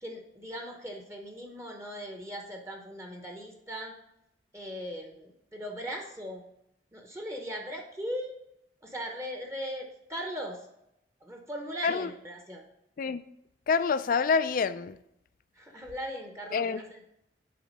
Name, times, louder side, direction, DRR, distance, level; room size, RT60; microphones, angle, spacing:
voice 1, 0.0-4.0 4.5-6.4 6.9-8.4 8.8-10.7 11.2-12.6 15.5-17.1, equal, 15° right, 2 dB, 0.9 m, -39 dB
voice 2, 13.7-15.0 16.5-16.8, left 5 dB, 50° left, 14 dB, 0.3 m, -27 dB
7.7 x 4.4 x 5.3 m, 0.80 s
head